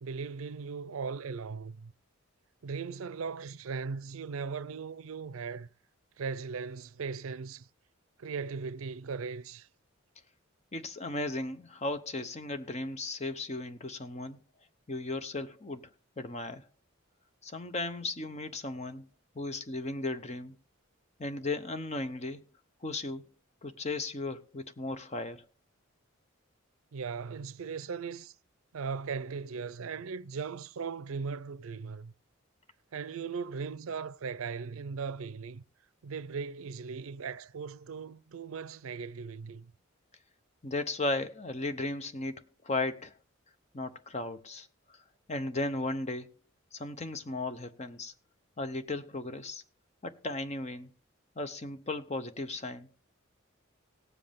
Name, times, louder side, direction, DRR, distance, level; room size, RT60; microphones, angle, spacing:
voice 1, 0.0-1.9 2.6-5.7 6.2-7.7 8.2-9.7 26.9-28.3 28.7-32.1 32.9-35.6 36.0-39.7, right 5 dB, 75° right, 0.5 m, -38 dB
voice 2, 10.7-14.4 14.9-15.9 16.2-16.6 17.4-19.1 19.3-20.5 21.2-22.4 22.8-23.3 23.6-25.5 40.6-43.1 43.7-45.0 45.3-46.3 46.7-48.1 48.6-49.6 50.0-50.9 51.4-52.9, left 2 dB, 30° left, 0.8 m, -36 dB
18.0 x 7.7 x 3.5 m
head